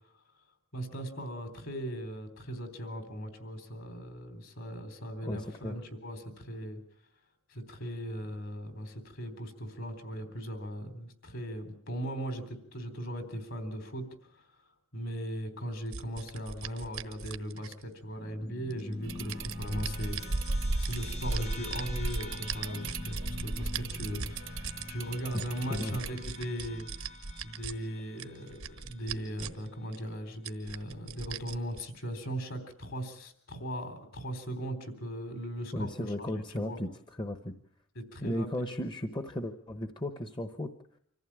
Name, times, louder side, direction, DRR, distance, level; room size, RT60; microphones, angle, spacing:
voice 1, 0.7-6.8 7.5-14.1 14.3-14.5 14.9-20.2 20.5-26.9 27.4-36.8 38.0-38.5, equal, 60° left, 8 dB, 3.7 m, -38 dB
voice 2, 5.2-5.7 25.7-26.0 35.7-36.9 37.2-37.5 38.2-40.7, left 1 dB, 20° left, 8 dB, 1.0 m, -35 dB
sound 1, 15.9-18.0 18.7-20.6 20.9-24.9 25.2-27.7 28.2-29.7 29.9-30.0 30.5-31.8, right 6 dB, 80° right, 1.2 m, -41 dB
sound 2, 18.2-28.9, left 2 dB, 80° left, 4.2 m, -44 dB
sound 3, 19.0-26.1, right 2 dB, 60° right, 0.9 m, -36 dB
25.5 x 15.0 x 8.8 m, 0.69 s
head